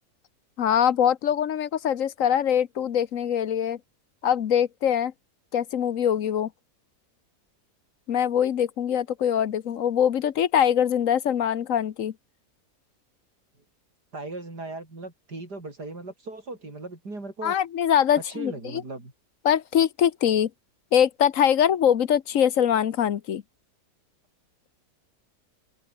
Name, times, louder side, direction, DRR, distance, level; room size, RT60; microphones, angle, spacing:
voice 1, 0.6-3.8 4.2-5.1 5.5-6.5 8.1-12.1 17.4-18.8 19.4-20.5 20.9-23.4, left 9 dB, 60° left, 1.2 m, -23 dB
voice 2, 14.1-17.5 18.3-19.1, right 2 dB, 90° right, 6.4 m, -38 dB
open air
omnidirectional pair, 1.7 m